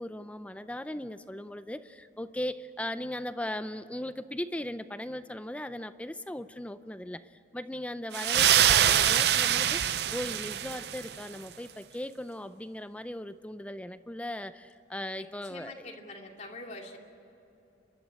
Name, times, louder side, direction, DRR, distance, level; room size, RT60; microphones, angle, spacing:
voice 1, 0.0-15.9, left 1 dB, 5° left, 12 dB, 0.5 m, -38 dB
sound 1, 8.1-11.2, right 10 dB, 65° right, 0.6 m, -24 dB
voice 2, 15.1-17.0, left 2 dB, 40° left, 1 dB, 2.7 m, -45 dB
29.5 x 12.0 x 9.8 m, 2.9 s
head